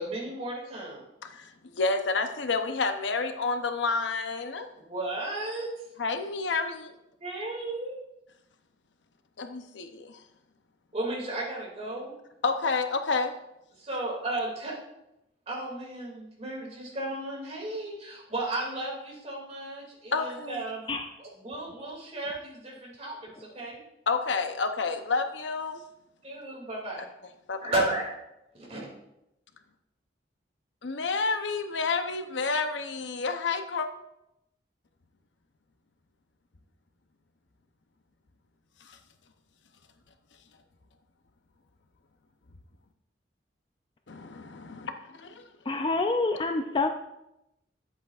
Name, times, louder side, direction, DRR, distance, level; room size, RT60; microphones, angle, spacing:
voice 1, 0.0-1.0 4.9-5.9 7.2-8.0 10.9-12.1 13.8-14.8 15.5-20.8 21.2-23.8 26.2-27.0 27.6-28.1 28.5-28.8, right 2 dB, 35° right, -3 dB, 2.5 m, -34 dB
voice 2, 1.2-4.7 6.0-6.9 9.4-10.2 12.4-13.3 20.1-20.6 24.1-25.8 27.5-27.7 30.8-33.9 38.9-39.0 44.1-45.4, left 4 dB, 85° left, 7 dB, 0.7 m, -29 dB
voice 3, 45.7-46.9, left 3 dB, 25° left, 6 dB, 0.4 m, -27 dB
10.5 x 8.3 x 2.5 m, 0.87 s
head